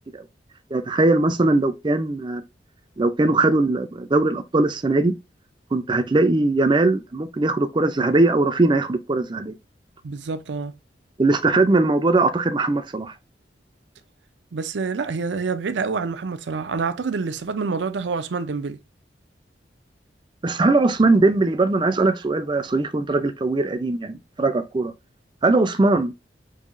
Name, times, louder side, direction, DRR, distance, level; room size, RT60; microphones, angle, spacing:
voice 1, 0.7-2.4 3.0-5.1 5.7-9.5 11.2-13.1 20.4-24.9 25.4-26.1, right 2 dB, 25° right, 0.5 m, -20 dB
voice 2, 10.0-10.7 14.5-18.8, right 4 dB, 80° right, 0.5 m, -27 dB
5.4 x 2.8 x 2.4 m
head